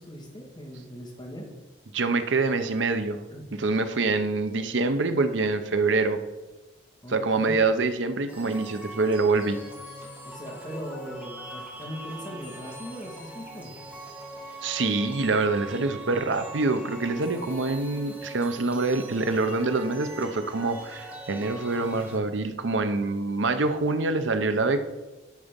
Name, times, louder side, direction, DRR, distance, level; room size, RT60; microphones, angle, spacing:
voice 1, 0.0-1.5 3.3-3.5 7.0-7.6 10.2-13.7, equal, 25° left, -3 dB, 1.9 m, -39 dB
voice 2, 1.9-3.2 3.6-6.2 7.1-9.6 14.6-24.8, right 3 dB, 75° right, 9 dB, 0.7 m, -25 dB
sound 1, 8.3-22.2, right 1 dB, 10° right, 2.0 m, -42 dB
11.0 x 4.2 x 5.2 m, 1.1 s
head